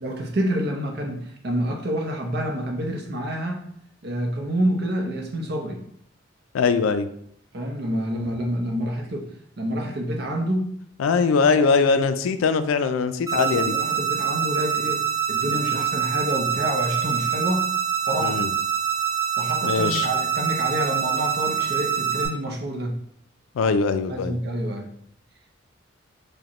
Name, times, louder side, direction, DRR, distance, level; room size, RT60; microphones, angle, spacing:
voice 1, 0.0-3.6 4.0-5.8 7.5-10.7 13.3-17.7 18.1-18.4 19.4-23.0 24.1-24.9, equal, 50° right, 2 dB, 0.7 m, -28 dB
voice 2, 6.5-7.1 11.0-13.8 18.2-18.5 19.6-20.1 23.6-24.4, left 5 dB, 80° left, 10 dB, 0.3 m, -21 dB
sound 1, 13.3-22.3, right 9 dB, 15° right, 0.6 m, -25 dB
4.8 x 2.2 x 2.9 m, 0.67 s
head